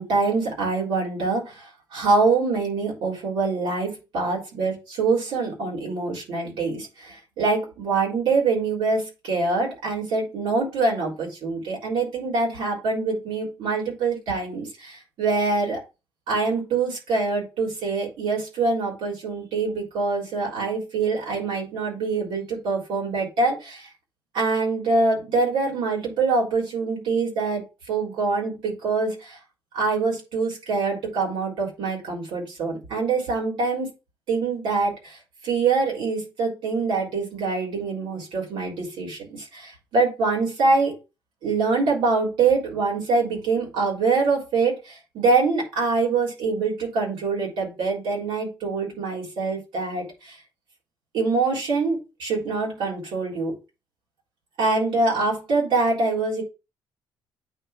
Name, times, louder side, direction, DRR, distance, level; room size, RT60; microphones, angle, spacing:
voice 1, 0.0-15.8 16.3-23.9 24.3-27.6 27.9-29.4 29.7-33.9 34.3-35.2 35.4-40.9 41.4-50.4 51.1-53.6 54.6-56.4, right 4 dB, 85° right, -2 dB, 3.8 m, -24 dB
8.9 x 3.1 x 4.4 m, 0.28 s
cardioid pair, 95°, 8 cm